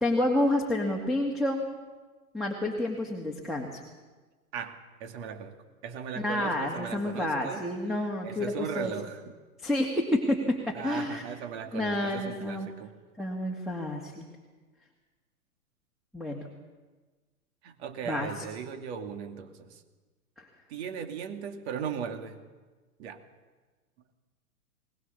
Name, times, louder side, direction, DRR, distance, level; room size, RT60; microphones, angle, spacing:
voice 1, 0.0-1.6 2.3-3.7 6.2-8.9 9.6-11.2 11.7-12.7 13.2-14.3 16.1-16.5 18.0-18.4 20.4-20.5, left 1 dB, ahead, 1 dB, 2.2 m, -29 dB
voice 2, 4.5-5.6 5.8-7.6 7.9-9.4 10.7-12.9 17.6-19.8 20.7-22.4 23.0-23.2, right 7 dB, 45° right, 6 dB, 2.7 m, -38 dB
21.0 x 19.5 x 6.8 m, 1.3 s
figure-of-eight pair, 115°, 45 cm